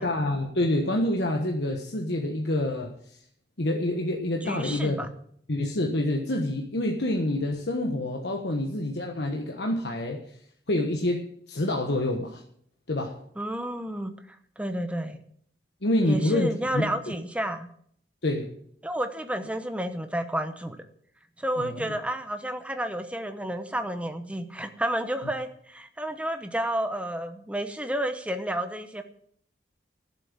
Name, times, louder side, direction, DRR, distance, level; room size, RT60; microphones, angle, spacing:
voice 1, 0.0-2.9 3.6-5.0 5.5-10.2 10.7-11.2 11.5-12.4 12.9-13.2 15.8-16.9 18.2-18.5 21.6-21.8, left 1 dB, 65° left, 2 dB, 1.3 m, -27 dB
voice 2, 4.4-5.1 13.4-14.1 14.6-15.2 16.0-17.7 18.8-20.8 21.4-29.0, right 1 dB, 5° right, 7 dB, 1.0 m, -31 dB
13.0 x 7.6 x 7.5 m, 0.63 s
head